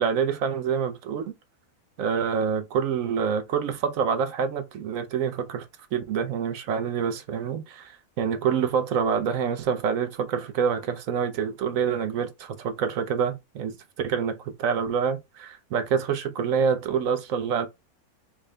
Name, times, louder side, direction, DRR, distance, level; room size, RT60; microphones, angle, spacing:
voice 1, 0.0-1.3 2.0-5.7 5.9-13.8 14.0-17.7, right 7 dB, 70° right, 1.0 m, -26 dB
4.7 x 2.0 x 3.2 m
omnidirectional pair, 1.5 m